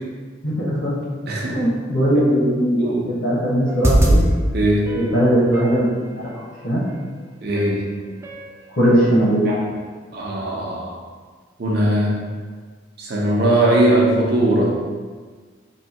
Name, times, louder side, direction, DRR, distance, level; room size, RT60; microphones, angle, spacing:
voice 1, 0.4-0.9 1.5-2.8 3.0-4.2 4.9-5.9 6.3-6.8 8.8-9.5, equal, 75° left, -10 dB, 0.9 m, -19 dB
voice 2, 1.3-1.6 2.8-3.1 4.5-4.9 7.4-7.9 9.5-9.6 10.1-10.9 11.6-12.2 13.0-14.8, right 1 dB, 55° right, -3 dB, 0.7 m, -19 dB
sound 1, 3.7-4.2 4.9-5.8 6.9-7.0 7.5-7.8 8.2-8.5 8.9-9.0, right 1 dB, 15° right, 0.3 m, -20 dB
3.2 x 2.6 x 4.3 m, 1.5 s
head